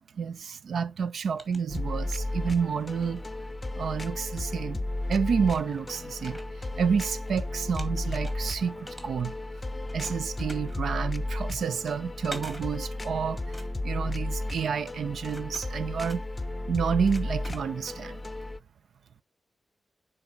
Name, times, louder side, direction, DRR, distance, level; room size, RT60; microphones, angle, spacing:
voice 1, 0.1-3.2 3.8-4.8 5.1-9.3 9.9-16.2 16.7-18.2, right 6 dB, 85° right, 0.5 m, -29 dB
sound 1, 1.0-2.3 2.8-4.5 5.0-5.1 5.4-7.3 7.6-9.5 9.9-18.1, equal, 5° right, 2.3 m, -48 dB
sound 2, 1.7-18.6, left 1 dB, 20° left, 0.7 m, -34 dB
9.3 x 4.2 x 4.6 m
cardioid pair, 70°, 0 cm